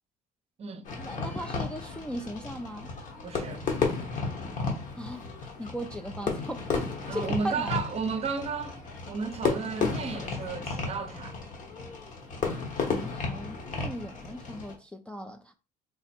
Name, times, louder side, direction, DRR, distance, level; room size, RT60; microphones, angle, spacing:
Fireworks, 0.8-14.8, left 4 dB, 50° left, 1.1 m, -33 dB
voice 1, 1.0-2.9 5.0-5.3 5.6-7.8 12.9-15.5, equal, 5° left, 0.3 m, -38 dB
voice 2, 3.2-3.7 7.1-8.8 9.1-11.4, right 5 dB, 35° right, 0.6 m, -33 dB
3.5 x 2.0 x 4.2 m
cardioid pair, 110°, 17 cm